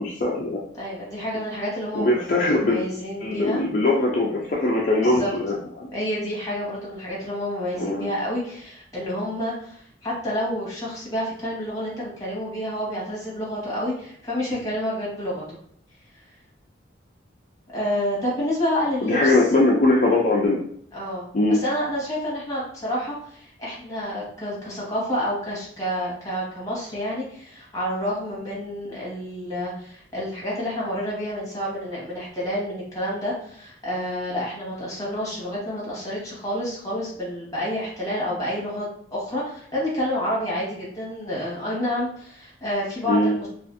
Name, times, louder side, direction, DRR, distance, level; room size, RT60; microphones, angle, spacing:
voice 1, 0.0-0.6 1.9-2.8 3.2-5.9 7.8-8.1 19.0-20.6 21.3-21.6 43.0-43.4, left 2 dB, 40° left, -5 dB, 0.4 m, -21 dB
voice 2, 0.7-2.3 2.5-3.6 5.0-5.3 5.9-15.6 17.7-19.4 20.9-21.2 21.5-43.5, equal, 20° left, -6 dB, 1.1 m, -29 dB
2.4 x 2.4 x 2.5 m, 0.64 s
head